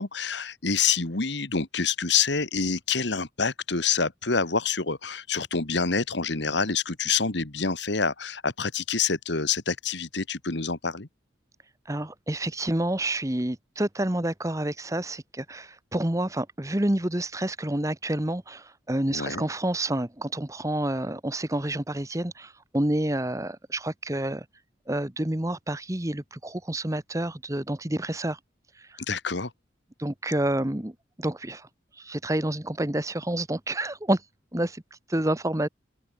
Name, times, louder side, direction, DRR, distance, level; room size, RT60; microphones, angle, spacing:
voice 1, 0.0-11.1 19.1-19.5 29.1-29.5, left 5 dB, 65° left, 1.9 m, -27 dB
voice 2, 11.9-24.4 24.9-28.4 30.0-30.9 31.2-31.7 32.0-34.2 34.5-34.8 35.1-35.7, right 1 dB, 15° right, 1.1 m, -28 dB
head